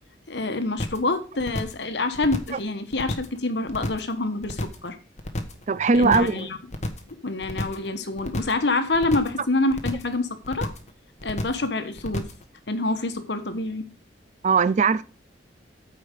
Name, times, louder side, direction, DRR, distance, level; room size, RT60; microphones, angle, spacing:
voice 1, 0.3-5.0 5.9-6.6 7.2-10.7 11.2-12.3 12.7-13.9, left 2 dB, 65° left, 1.3 m, -26 dB
sound 1, 0.8-1.1 1.4-1.8 2.1-2.6 2.9-3.4 3.7-4.1 4.4-4.9 5.2-5.6 5.9-6.4 6.7-7.1 7.4-7.9 8.2-8.6 8.9-9.4 9.7-10.1 10.4-10.9 11.2-11.7 12.0-12.4, left 1 dB, 40° left, 1.2 m, -31 dB
voice 2, 5.7-6.5 14.4-15.0, right 4 dB, 40° right, 0.4 m, -20 dB
8.7 x 5.0 x 6.5 m
head